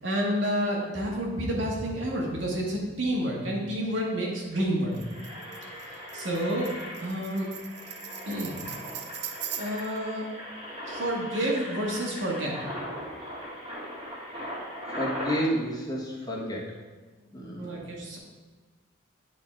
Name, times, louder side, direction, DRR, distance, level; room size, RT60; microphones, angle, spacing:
voice 1, 0.0-5.0 6.1-6.7 7.0-7.5 8.3-8.6 9.6-10.3 10.9-12.5 17.5-18.2, equal, 80° right, -2 dB, 1.8 m, -29 dB
Engine, 4.2-4.3 4.7-15.4, equal, 25° right, 2.1 m, -39 dB
Tambourine, 4.9-10.0, right 9 dB, 60° right, 0.5 m, -40 dB
voice 2, 15.0-16.7 17.3-17.8, equal, 20° left, -3 dB, 1.2 m, -30 dB
9.1 x 4.2 x 4.5 m, 1.3 s
head